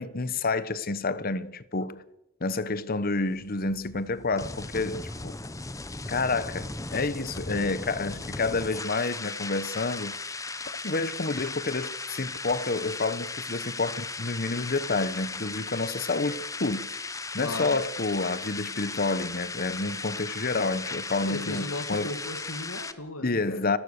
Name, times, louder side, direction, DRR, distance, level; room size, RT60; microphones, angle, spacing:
voice 1, 0.0-2.0 2.4-5.4 6.1-10.1 10.8-16.9 17.3-22.1 23.2-23.8, left 3 dB, 45° left, 1.0 m, -29 dB
sound 1, 3.3-22.9, left 3 dB, 15° left, 0.9 m, -37 dB
voice 2, 17.4-17.8 21.2-23.8, left 2 dB, 80° left, 2.2 m, -36 dB
28.5 x 15.5 x 6.7 m
head